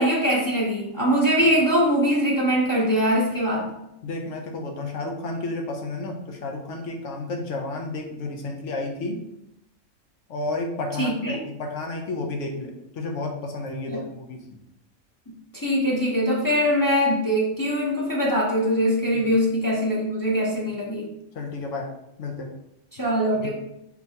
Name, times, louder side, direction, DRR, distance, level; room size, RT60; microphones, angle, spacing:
voice 1, 0.0-3.7 11.0-11.4 13.9-14.0 15.6-21.1 23.0-23.5, equal, 20° left, -5 dB, 0.6 m, -22 dB
voice 2, 4.0-9.2 10.3-14.6 19.1-19.3 21.3-22.5 23.4-23.5, left 2 dB, 70° left, 2 dB, 1.0 m, -32 dB
4.6 x 3.3 x 2.8 m, 0.83 s
omnidirectional pair, 1.3 m